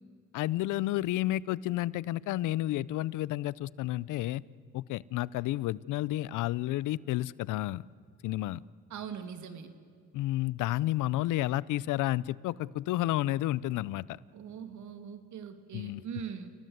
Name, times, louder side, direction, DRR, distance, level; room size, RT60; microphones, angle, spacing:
voice 1, 0.3-4.4 4.7-7.8 8.2-8.6 10.1-14.2 15.7-16.0, left 15 dB, 90° left, 22 dB, 0.6 m, -31 dB
voice 2, 8.9-9.7 14.3-16.5, right 7 dB, 70° right, 9 dB, 2.5 m, -41 dB
29.5 x 18.0 x 8.0 m, 2.1 s
cardioid pair, 90°, 30 cm